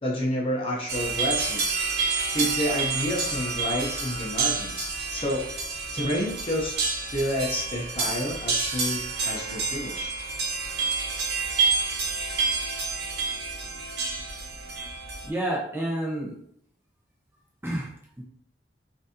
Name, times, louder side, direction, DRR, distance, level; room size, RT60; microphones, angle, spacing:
voice 1, 0.0-1.7 2.3-5.5 5.9-6.8 7.1-10.1, left 1 dB, 30° left, -2 dB, 0.8 m, -29 dB
sound 1, 0.9-15.3, right 4 dB, 60° right, 1.0 m, -29 dB
voice 2, 15.2-16.3 17.6-17.9 18.2-18.3, right 1 dB, 15° right, -4 dB, 1.0 m, -29 dB
5.9 x 2.7 x 2.8 m, 0.68 s
head